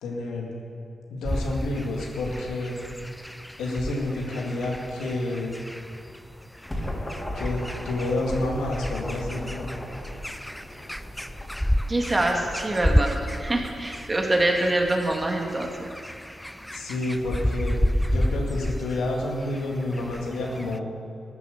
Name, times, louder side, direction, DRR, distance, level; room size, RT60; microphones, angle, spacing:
voice 1, 0.0-0.5 1.1-2.8 3.6-5.6 7.4-9.7 16.7-17.8 18.1-20.9, left 2 dB, 85° left, -1 dB, 2.0 m, -29 dB
sound 1, 1.2-20.8, equal, 5° left, 0.5 m, -31 dB
sound 2, 6.3-15.7, left 1 dB, 25° left, 3.3 m, -37 dB
voice 2, 11.9-15.9, right 1 dB, 30° right, 1 dB, 2.2 m, -25 dB
13.5 x 9.4 x 6.7 m, 2.6 s
supercardioid pair, 45°, 0 cm